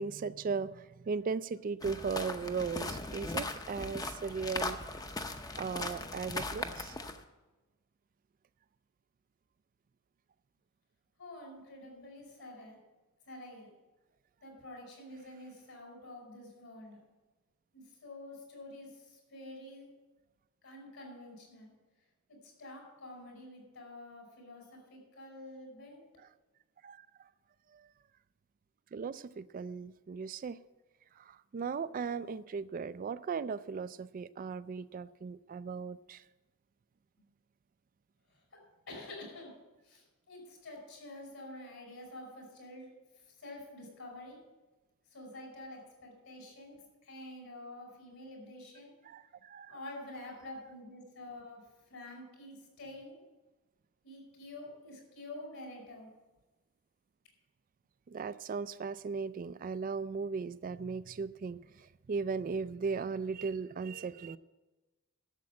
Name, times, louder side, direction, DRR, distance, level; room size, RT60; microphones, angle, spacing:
voice 1, 0.0-4.8 5.6-7.0 26.8-27.1 27.7-27.9 28.9-30.6 31.2-36.2 49.0-49.8 58.1-64.4, right 5 dB, 40° right, 15 dB, 0.3 m, -37 dB
sound 1, 1.8-7.2, left 2 dB, 15° left, 0.7 m, -39 dB
voice 2, 11.2-12.8 13.3-13.7 14.4-17.0 17.7-19.9 20.6-21.7 22.4-26.0 38.3-38.4 38.9-39.5 39.8-42.9 43.2-44.4 45.1-48.9 49.7-51.6 51.9-53.2 54.0-56.1, left 1 dB, 65° left, 0 dB, 5.2 m, -48 dB
12.0 x 7.4 x 8.5 m, 1.2 s
head